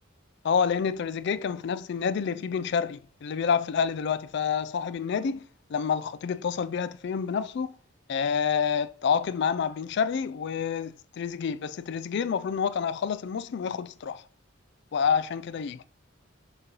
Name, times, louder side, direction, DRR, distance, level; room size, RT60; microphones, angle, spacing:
voice 1, 0.4-5.4 5.7-7.7 8.1-14.2 14.9-15.8, left 6 dB, 55° left, 0.3 m, -28 dB
6.6 x 3.0 x 5.3 m
head